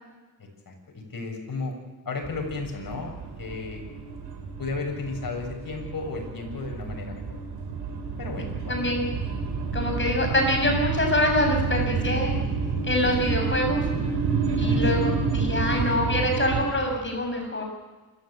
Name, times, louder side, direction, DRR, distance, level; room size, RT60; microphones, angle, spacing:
voice 1, 0.6-1.7 2.0-3.1 3.4-3.9 4.6-7.4 8.2-8.8 12.6-12.8 14.6-14.8, left 3 dB, 60° left, 2 dB, 6.9 m, -34 dB
sound 1, 2.2-16.7, right 5 dB, 85° right, 5.6 m, -29 dB
voice 2, 8.7-9.1 9.7-12.3 12.8-13.9 14.6-17.6, left 1 dB, 30° left, 2 dB, 6.8 m, -25 dB
28.0 x 14.0 x 8.6 m, 1.2 s
cardioid pair, 70°, 40 cm